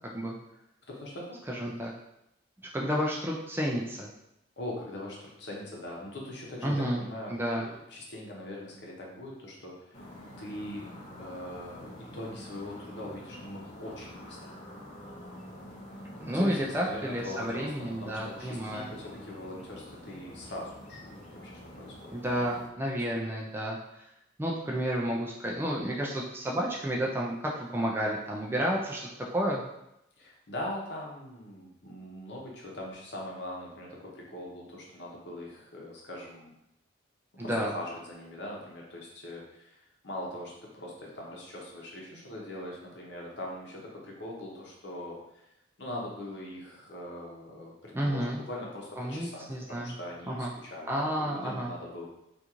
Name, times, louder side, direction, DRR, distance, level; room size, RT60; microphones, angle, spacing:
voice 1, 0.9-1.4 4.6-10.1 10.4-10.9 11.2-14.5 16.1-22.5 22.9-23.0 30.2-36.5 37.3-45.4 45.8-52.1, left 1 dB, 65° left, -2 dB, 0.8 m, -41 dB
voice 2, 1.5-1.9 2.7-4.1 6.6-7.0 7.3-7.7 16.2-18.9 22.1-24.1 24.4-29.6 37.4-37.7 47.9-48.4 49.0-49.9 50.3-50.5 50.9-51.7, equal, 10° right, -3 dB, 0.3 m, -31 dB
sound 1, 9.9-22.7, equal, 35° left, 0.5 m, -47 dB
3.6 x 2.5 x 2.9 m, 0.83 s
head